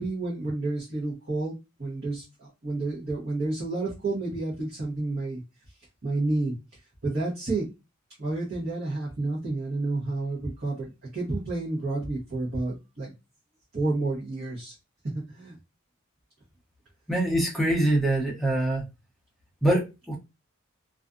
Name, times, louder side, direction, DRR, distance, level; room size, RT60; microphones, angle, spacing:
voice 1, 0.0-5.4 6.0-6.6 7.0-7.7 8.2-13.1 13.7-14.7 15.1-15.5, right 2 dB, 45° right, 0.9 m, -30 dB
voice 2, 17.1-18.8 19.6-20.2, right 1 dB, ahead, 0.6 m, -24 dB
2.5 x 2.3 x 2.4 m
head